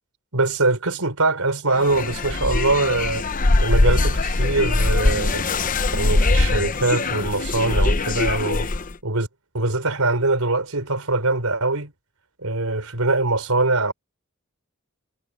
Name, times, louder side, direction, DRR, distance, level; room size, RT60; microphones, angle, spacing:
voice 1, 0.3-3.2 3.6-5.4 5.9-8.7 9.0-9.3 9.5-11.9 12.4-13.9, right 2 dB, 85° right, 4.3 m, -22 dB
sound 1, 1.7-8.9, left 2 dB, 40° left, 0.8 m, -21 dB
head